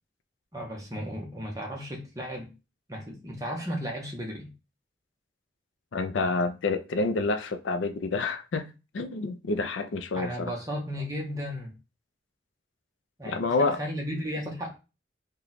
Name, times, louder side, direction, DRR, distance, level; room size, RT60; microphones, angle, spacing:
voice 1, 0.5-2.5 2.9-4.5 10.1-11.8 13.2-14.7, equal, 20° right, 0.8 m, -35 dB
voice 2, 5.9-8.7 8.9-10.5 13.3-13.8, left 3 dB, 85° left, 0.5 m, -28 dB
3.0 x 2.3 x 3.9 m
head